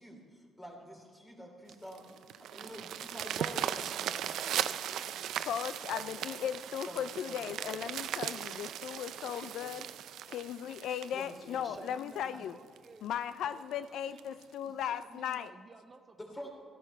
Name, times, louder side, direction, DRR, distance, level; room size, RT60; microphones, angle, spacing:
voice 1, 0.0-2.1 2.5-5.5 5.9-6.0 6.8-7.8 9.6-9.9 11.1-11.7 12.3-12.4 16.2-16.5, equal, 20° left, 1 dB, 3.2 m, -48 dB
sound 1, 1.7-12.2 12.8-12.9 13.3-13.4 13.7-13.8 14.2-14.4 15.3-15.4, right 10 dB, 80° right, 0.4 m, -38 dB
voice 2, 5.4-9.9 10.3-12.6 13.0-15.5, left 9 dB, 75° left, 13 dB, 0.3 m, -37 dB
voice 3, 11.6-14.4 14.6-16.5, right 3 dB, 30° right, 7 dB, 0.7 m, -55 dB
14.0 x 12.0 x 4.4 m, 2.1 s
cardioid pair, 90°, 0 cm